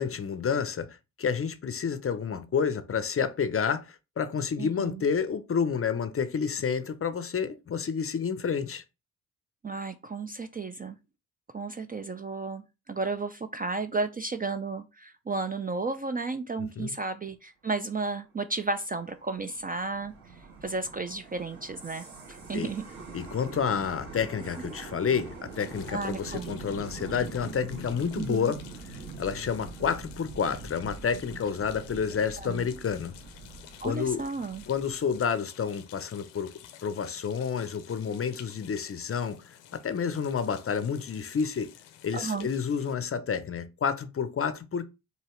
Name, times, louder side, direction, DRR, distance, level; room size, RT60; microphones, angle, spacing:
voice 1, 0.0-8.8 16.6-16.9 22.5-22.7 23.1-28.6 29.2-33.1 33.8-34.2 34.7-36.5 36.8-41.7 42.0-44.8, left 6 dB, 35° left, 0.6 m, -29 dB
voice 2, 4.6-5.0 9.6-11.0 11.5-20.1 20.6-22.9 25.9-26.6 28.2-28.5 32.4-32.7 33.8-34.6 42.1-42.5, right 3 dB, 20° right, 0.4 m, -33 dB
sound 1, 18.7-35.2, right 4 dB, 55° right, 2.3 m, -44 dB
sound 2, 25.5-42.9, left 11 dB, 80° left, 0.7 m, -52 dB
4.6 x 2.8 x 3.1 m
hypercardioid pair, 45°, 42 cm